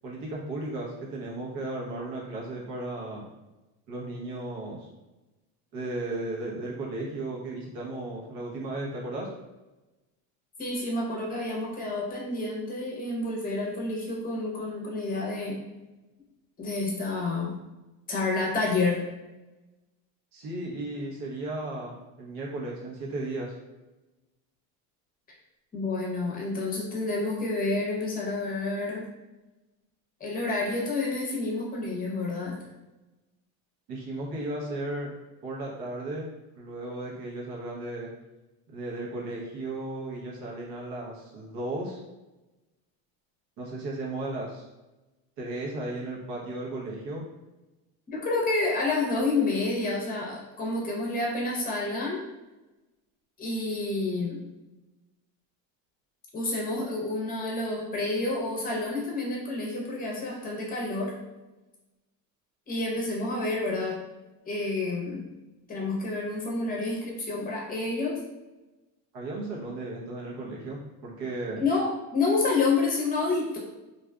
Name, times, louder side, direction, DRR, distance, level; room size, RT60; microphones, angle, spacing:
voice 1, 0.0-3.2 3.9-4.9 5.7-9.3 20.3-23.5 33.9-35.1 35.4-36.3 36.6-38.1 38.7-42.0 43.6-44.7 45.4-47.2 69.1-71.6, right 2 dB, 70° right, -3 dB, 1.0 m, -35 dB
voice 2, 10.6-15.6 16.6-17.6 18.1-19.0 25.7-29.1 30.2-32.6 48.1-52.2 53.4-54.4 56.3-61.1 62.7-64.0 64.4-65.2 65.7-68.2 71.6-73.6, left 3 dB, 20° left, -2 dB, 0.8 m, -29 dB
2.6 x 2.3 x 2.3 m, 1.1 s
supercardioid pair, 110°, 42 cm